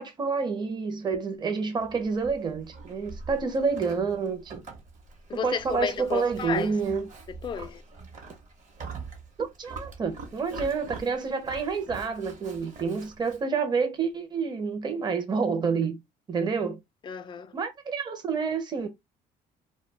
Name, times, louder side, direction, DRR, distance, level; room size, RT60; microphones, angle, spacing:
voice 1, 0.0-4.6 5.4-7.1 9.4-16.0 16.3-16.8 17.5-18.9, right 5 dB, 25° right, 0.6 m, -28 dB
Livestock farm animals working animals, 1.8-13.4, right 4 dB, 50° right, 1.0 m, -44 dB
voice 2, 5.3-6.7 7.3-7.8 17.0-17.5, left 7 dB, 30° left, 0.4 m, -32 dB
2.2 x 2.2 x 3.3 m
cardioid pair, 110°, 17 cm